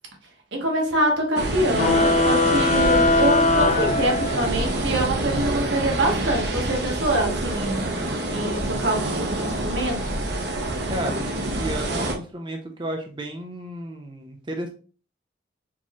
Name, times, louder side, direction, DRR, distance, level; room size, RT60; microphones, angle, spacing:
voice 1, 0.5-10.2, right 1 dB, 85° right, 1 dB, 1.1 m, -25 dB
sound 1, 1.4-12.1, right 1 dB, 65° right, 0.8 m, -27 dB
sound 2, 1.7-4.7, left 2 dB, 40° left, 0.5 m, -20 dB
voice 2, 10.9-14.7, right 1 dB, 25° right, 2 dB, 0.5 m, -33 dB
4.4 x 3.0 x 2.9 m, 0.38 s
head